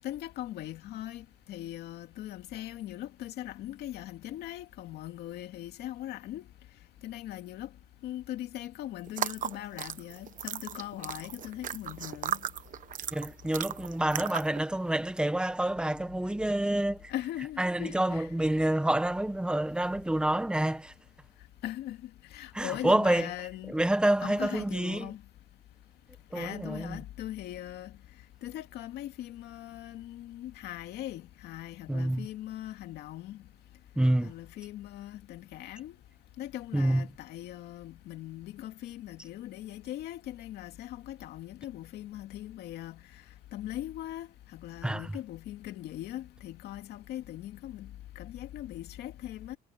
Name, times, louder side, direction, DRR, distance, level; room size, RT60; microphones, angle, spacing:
voice 1, 0.0-6.4 7.0-7.7 8.0-12.4 17.1-18.3 21.6-23.7 24.2-25.2 26.3-27.9 28.4-33.4 34.2-35.9 36.4-43.0 43.5-47.9 48.2-49.6, left 13 dB, 75° left, 2.5 m, -40 dB
sound 1, 9.1-14.6, right 10 dB, 50° right, 1.1 m, -36 dB
voice 2, 13.1-17.1 17.6-20.9 22.5-23.3 23.7-25.1 26.3-27.0 31.9-32.3 34.0-34.3 36.7-37.0 44.8-45.1, right 1 dB, 5° right, 1.3 m, -28 dB
cardioid pair, 110°, 17 cm